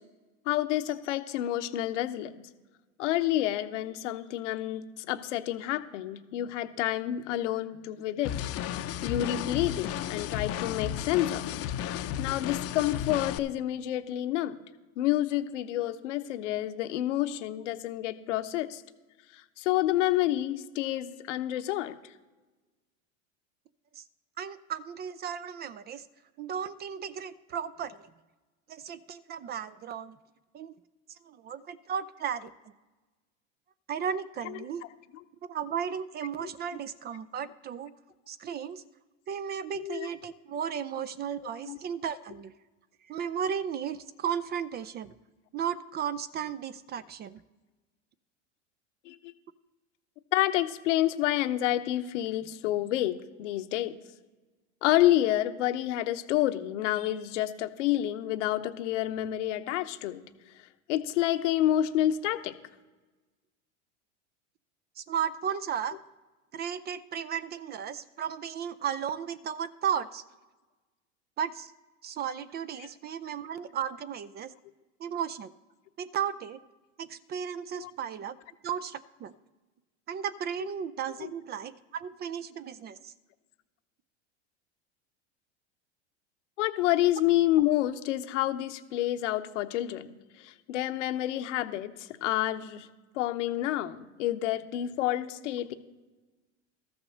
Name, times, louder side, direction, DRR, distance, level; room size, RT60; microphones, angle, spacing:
voice 1, 0.5-2.4 3.0-8.3 9.0-11.6 11.9-14.6 15.0-18.8 19.3-21.9 36.4-36.5 39.8-40.1 41.7-41.8 49.1-49.3 50.3-54.0 54.8-60.2 60.9-62.5 77.8-77.9 81.2-81.3 86.6-92.9 93.1-95.7, left 13 dB, 75° left, 9 dB, 1.0 m, -29 dB
sound 1, 8.2-13.4, left 10 dB, 40° left, 0.7 m, -33 dB
voice 2, 24.4-26.1 26.4-28.0 28.7-30.2 30.5-30.7 31.2-32.5 33.9-34.8 35.5-37.9 38.3-38.8 39.3-42.5 43.1-45.1 45.5-47.4 65.0-66.0 66.5-70.2 71.4-71.7 72.0-74.5 75.0-75.5 76.0-76.6 77.0-78.4 78.6-79.3 80.1-83.1, right 8 dB, 30° right, 15 dB, 0.4 m, -35 dB
13.5 x 6.0 x 6.5 m, 1.2 s
hypercardioid pair, 105°, 36 cm